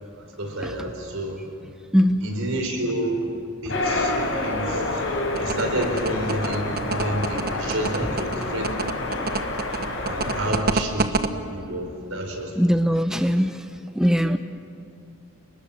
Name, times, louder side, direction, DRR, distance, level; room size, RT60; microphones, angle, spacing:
voice 1, 0.0-1.4 2.2-3.2 3.6-5.0 5.4-8.7 10.1-12.5, right 1 dB, 75° right, 3 dB, 4.9 m, -29 dB
sound 1, 3.7-10.5, left 2 dB, 60° left, 6.0 m, -28 dB
sound 2, 5.4-11.3, right 3 dB, 45° right, 1.1 m, -26 dB
voice 2, 12.6-13.6 14.0-14.4, equal, 5° right, 8 dB, 0.6 m, -20 dB
30.0 x 20.0 x 7.6 m, 2.5 s
head